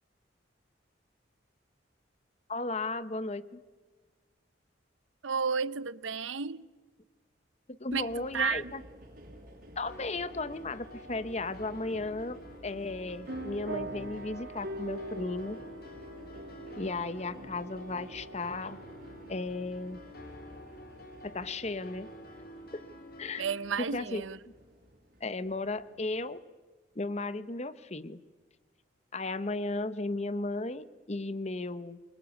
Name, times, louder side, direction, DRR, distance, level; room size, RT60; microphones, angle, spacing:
voice 1, 2.5-3.6 7.8-8.8 9.8-12.4 12.6-15.6 16.8-18.8 19.3-20.0 21.2-22.1 22.7-22.8 23.2-23.4 23.8-24.2 25.2-26.4 26.9-28.2 29.1-32.0, left 2 dB, 35° left, 1.0 m, -35 dB
voice 2, 5.2-6.6 7.9-8.7 23.4-24.4, right 6 dB, 90° right, 0.8 m, -32 dB
sound 1, 7.9-26.2, equal, 45° right, 6.2 m, -54 dB
sound 2, 9.9-23.6, equal, 50° left, 3.8 m, -49 dB
sound 3, 13.3-21.4, right 1 dB, 65° right, 2.5 m, -44 dB
28.0 x 23.5 x 8.4 m
head